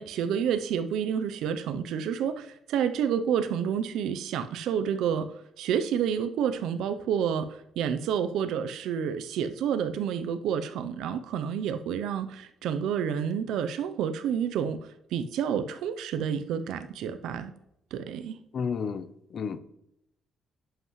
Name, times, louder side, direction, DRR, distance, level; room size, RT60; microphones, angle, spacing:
voice 1, 0.0-14.8 15.1-17.5 17.9-18.3, right 8 dB, 85° right, 10 dB, 0.6 m, -29 dB
voice 2, 18.5-19.1 19.3-19.6, left 6 dB, 55° left, 13 dB, 0.7 m, -31 dB
11.0 x 7.8 x 3.1 m, 0.78 s
cardioid pair, 90°, 0 cm